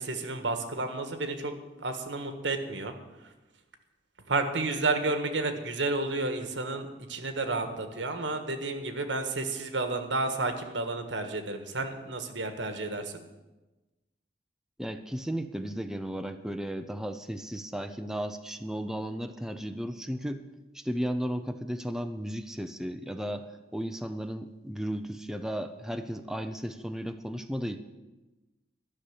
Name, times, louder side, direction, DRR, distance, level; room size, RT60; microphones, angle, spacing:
voice 1, 0.0-1.5 1.8-2.9 4.3-13.2, right 3 dB, 80° right, 7 dB, 1.6 m, -31 dB
voice 2, 14.8-20.4 20.7-27.8, equal, 5° right, 7 dB, 0.6 m, -34 dB
13.0 x 6.8 x 9.9 m, 1.1 s
head